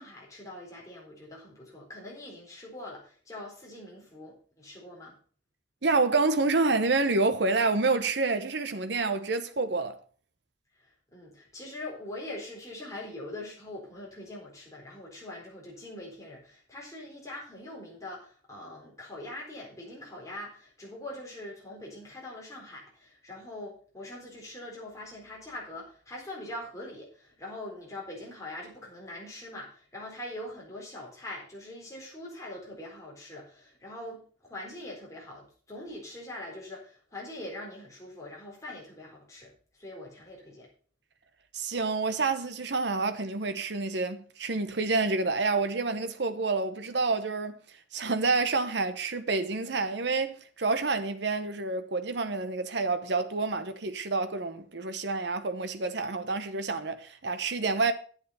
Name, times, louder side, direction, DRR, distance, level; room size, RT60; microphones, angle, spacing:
voice 1, 0.0-5.2 10.8-40.7, left 1 dB, 15° left, 4.0 m, -43 dB
voice 2, 5.8-10.0 41.5-57.9, right 3 dB, 60° right, 0.9 m, -28 dB
9.3 x 8.0 x 5.5 m
head